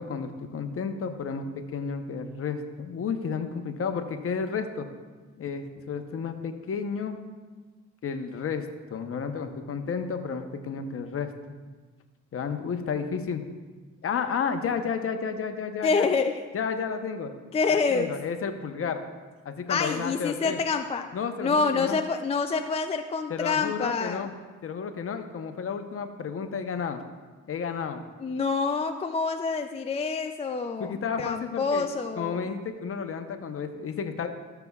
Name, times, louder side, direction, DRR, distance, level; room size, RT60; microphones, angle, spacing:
voice 1, 0.0-4.9 5.4-7.2 8.0-11.3 12.3-13.4 14.0-16.1 16.5-17.3 17.7-19.0 19.4-20.6 21.1-22.0 23.3-24.3 24.6-27.0 27.5-28.0 30.8-31.9 32.2-34.3, left 6 dB, 45° left, 7 dB, 0.9 m, -32 dB
voice 2, 15.8-16.4 17.5-18.2 19.7-21.1 21.4-24.2 28.2-32.4, left 4 dB, 20° left, 6 dB, 0.3 m, -27 dB
14.0 x 6.8 x 2.3 m, 1.3 s
cardioid pair, 90°, 30 cm